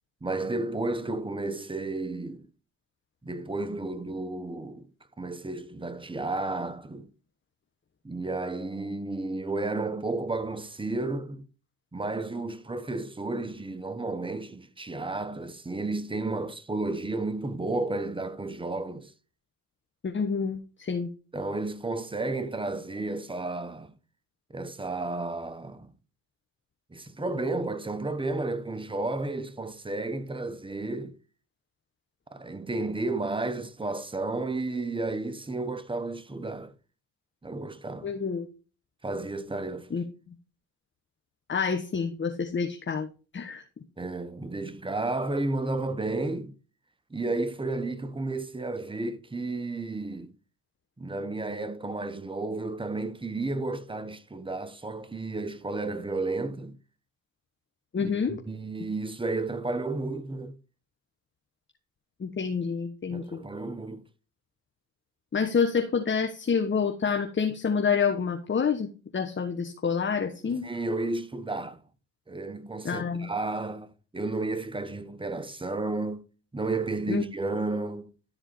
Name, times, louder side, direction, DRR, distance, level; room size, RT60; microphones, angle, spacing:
voice 1, 0.2-2.5 3.2-4.9 5.2-7.1 8.0-11.4 11.9-19.1 21.3-23.9 24.5-25.9 26.9-31.2 32.3-36.7 37.4-38.2 39.0-40.0 44.0-46.5 47.1-50.3 51.0-56.8 58.0-60.5 63.1-64.0 70.6-71.8 72.3-76.2 76.5-78.1, right 2 dB, 15° right, 1.2 m, -32 dB
voice 2, 20.0-21.1 38.0-38.5 39.9-40.0 41.5-43.1 43.3-43.6 57.9-58.4 62.2-63.4 65.3-70.6 72.8-73.3 77.1-77.2, left 6 dB, 30° left, 1.3 m, -28 dB
13.0 x 4.4 x 4.4 m
supercardioid pair, 75°, 39 cm